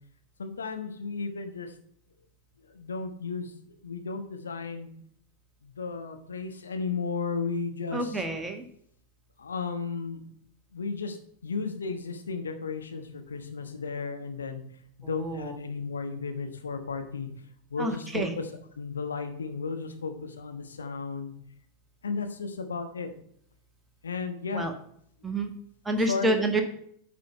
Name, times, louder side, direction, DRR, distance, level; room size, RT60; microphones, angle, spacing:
voice 1, 0.4-1.7 2.8-3.5 3.8-4.9 5.8-8.0 9.4-10.2 10.7-11.2 11.4-14.6 15.1-17.3 17.7-18.3 18.8-21.3 22.0-23.1 24.0-24.7 26.1-26.3, left 4 dB, 70° left, 6 dB, 1.2 m, -34 dB
voice 2, 7.9-8.6 15.0-15.6 17.8-18.3 24.5-24.7 25.2-25.5 25.8-26.6, right 2 dB, 10° right, 5 dB, 1.4 m, -28 dB
9.3 x 5.1 x 5.6 m, 0.66 s
figure-of-eight pair, 90°, 0 cm